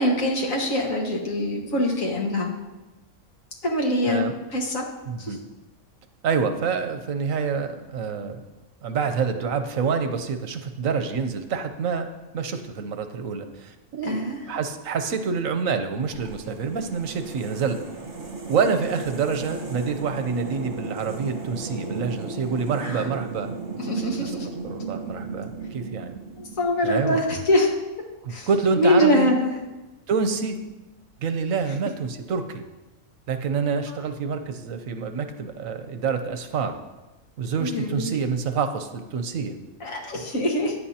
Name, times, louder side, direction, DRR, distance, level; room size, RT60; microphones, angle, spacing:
voice 1, 0.0-2.5 3.6-4.8 5.2-5.4 14.0-14.4 22.8-23.0 23.8-24.5 26.4-27.7 28.3-28.5 28.8-29.5 33.9-34.0 37.6-38.1 39.8-40.7, left 1 dB, 90° left, 0 dB, 2.1 m, -23 dB
voice 2, 5.1-5.4 6.2-8.4 8.8-12.1 12.3-17.8 18.5-23.5 24.6-26.1 26.8-27.2 28.2-29.3 30.1-30.6 31.2-32.6 33.3-36.7 37.4-39.5, right 5 dB, 85° right, 7 dB, 1.3 m, -27 dB
sound 1, 16.1-27.2, right 4 dB, 60° right, 1.8 m, -35 dB
15.0 x 9.7 x 2.9 m, 1.1 s
omnidirectional pair, 1.4 m